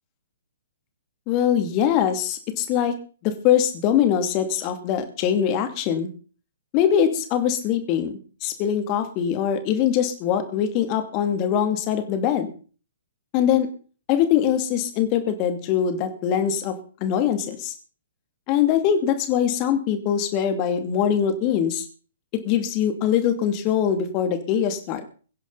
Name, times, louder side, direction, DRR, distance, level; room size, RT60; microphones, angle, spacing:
voice 1, 1.3-2.9 3.2-6.1 6.7-12.5 13.3-13.7 14.1-16.8 17.0-17.7 18.5-21.8 22.4-25.1, left 9 dB, 30° left, 8 dB, 2.6 m, -22 dB
22.5 x 10.5 x 4.1 m, 0.40 s
figure-of-eight pair, 120°, 0 cm